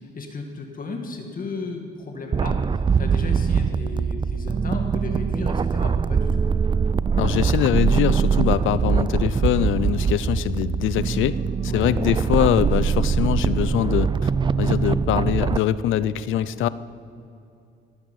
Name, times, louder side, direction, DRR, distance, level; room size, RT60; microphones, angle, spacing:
voice 1, 0.1-6.4 11.7-11.9, left 3 dB, 45° left, 3 dB, 1.9 m, -34 dB
sound 1, 2.3-15.6, right 6 dB, 25° right, 0.3 m, -22 dB
voice 2, 7.2-11.4 11.6-14.3 14.6-16.7, left 11 dB, 80° left, 16 dB, 0.6 m, -23 dB
18.0 x 9.0 x 7.5 m, 2.5 s
cardioid pair, 90°, 20 cm